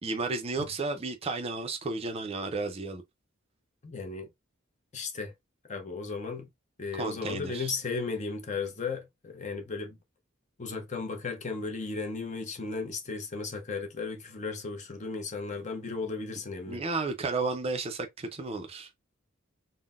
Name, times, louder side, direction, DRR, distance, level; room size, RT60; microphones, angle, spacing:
voice 1, 0.0-3.0 6.9-7.7 16.7-18.9, right 3 dB, 30° right, 0.4 m, -33 dB
voice 2, 3.8-4.3 4.9-5.3 5.7-6.5 6.8-10.0 10.6-16.8, left 4 dB, 35° left, 0.6 m, -35 dB
3.7 x 2.0 x 2.3 m
head